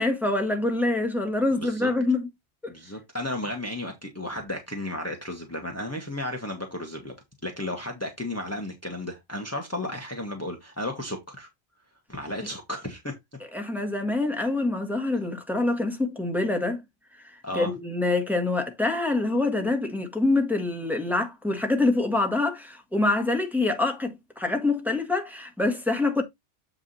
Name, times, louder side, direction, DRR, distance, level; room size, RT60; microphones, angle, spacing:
voice 1, 0.0-2.3 2.6-2.7 13.5-16.8 17.2-26.2, left 2 dB, ahead, 1.7 m, -25 dB
voice 2, 1.5-1.9 2.7-7.1 7.4-11.5 12.1-13.1 17.4-17.7, left 1 dB, 15° left, 1.4 m, -33 dB
7.9 x 4.8 x 4.0 m
omnidirectional pair, 1.1 m